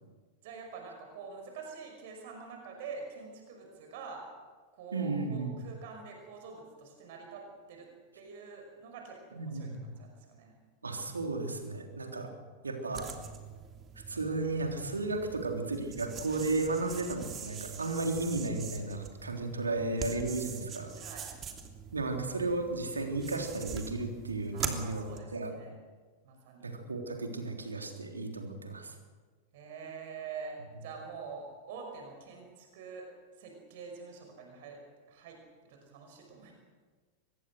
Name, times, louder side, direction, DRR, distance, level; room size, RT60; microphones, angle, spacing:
voice 1, 0.4-4.3 4.7-7.9 8.1-10.5 20.9-21.3 24.5-25.8 26.2-26.7 29.5-33.1 33.4-34.8 35.1-35.4 35.6-36.5, right 5 dB, 50° right, 3 dB, 5.5 m, -46 dB
voice 2, 4.9-5.6 9.3-9.8 10.8-12.3 12.6-13.1 14.1-20.9 21.9-25.5 26.6-28.9, right 2 dB, 75° right, 3 dB, 3.5 m, -34 dB
sound 1, 12.9-25.2, right 7 dB, 25° right, 2.9 m, -43 dB
24.5 x 21.0 x 6.5 m, 1.4 s
figure-of-eight pair, 90°, 0 cm